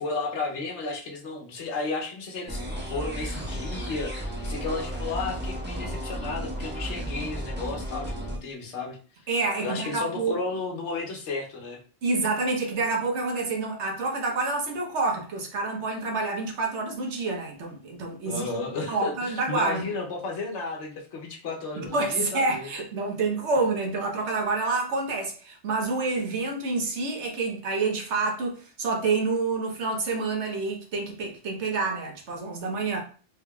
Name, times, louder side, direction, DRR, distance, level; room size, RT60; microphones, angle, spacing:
voice 1, 0.0-9.0 9.6-11.8 18.2-22.7, left 3 dB, 85° left, 1.1 m, -33 dB
sound 1, 2.5-8.4, equal, 10° right, 0.6 m, -33 dB
voice 2, 9.3-10.4 12.0-18.5 18.9-19.9 21.8-33.0, right 3 dB, 80° right, 1.2 m, -28 dB
3.5 x 3.5 x 2.3 m
omnidirectional pair, 1.2 m